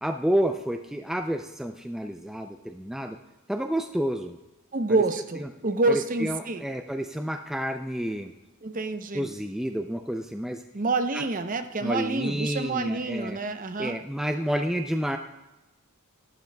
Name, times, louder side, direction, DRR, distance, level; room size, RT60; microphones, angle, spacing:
voice 1, 0.0-3.2 3.5-4.4 5.4-5.5 5.9-8.3 9.1-10.6 11.1-11.2 11.8-13.4 13.8-15.2, equal, ahead, 5 dB, 0.3 m, -29 dB
voice 2, 4.7-6.7 8.6-9.3 10.7-14.0, right 3 dB, 40° right, 8 dB, 0.7 m, -27 dB
12.0 x 11.5 x 2.2 m, 1.1 s
head